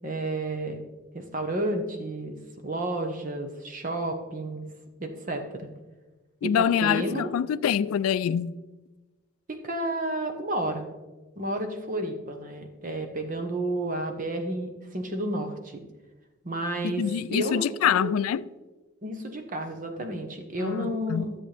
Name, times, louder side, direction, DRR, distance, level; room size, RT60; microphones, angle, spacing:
voice 1, 0.0-0.8 1.1-4.7 5.0-5.7 6.4-7.3 9.6-10.9 11.4-15.8 16.4-18.1 19.0-21.3, right 1 dB, 35° right, 1.0 m, -31 dB
voice 2, 6.4-8.5 16.8-18.4 20.6-21.3, left 8 dB, 80° left, 0.3 m, -25 dB
13.0 x 7.4 x 3.4 m
head